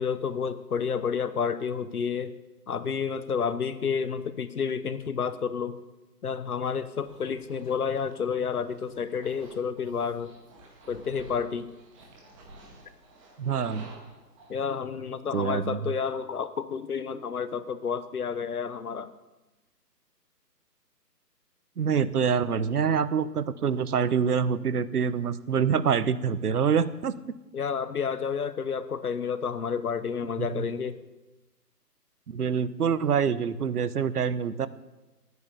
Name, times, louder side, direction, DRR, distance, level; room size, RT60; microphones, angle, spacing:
voice 1, 0.0-2.3 2.7-5.8 6.2-10.3 10.9-11.7 14.5-19.1 27.5-31.0, left 6 dB, 65° left, 13 dB, 1.1 m, -30 dB
sound 1, 7.0-14.5, right 2 dB, 20° right, 1.8 m, -52 dB
voice 2, 13.4-13.9 15.3-15.9 21.8-27.1 30.4-30.7 32.3-34.7, right 7 dB, 65° right, 15 dB, 0.9 m, -26 dB
12.0 x 9.6 x 6.7 m, 1.1 s
figure-of-eight pair, 155°, 49 cm